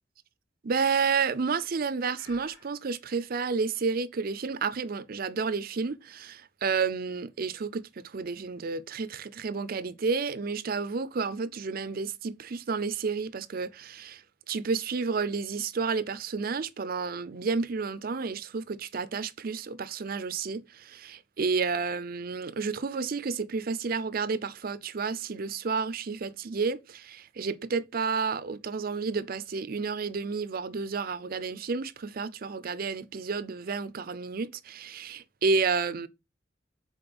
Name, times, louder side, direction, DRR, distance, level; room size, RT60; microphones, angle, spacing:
voice 1, 0.6-14.2 14.5-36.1, right 5 dB, 55° right, 0.5 m, -31 dB
Breathing, 0.8-1.4 2.1-2.7, left 1 dB, 75° left, 4.2 m, -55 dB
5.9 x 4.1 x 5.2 m
head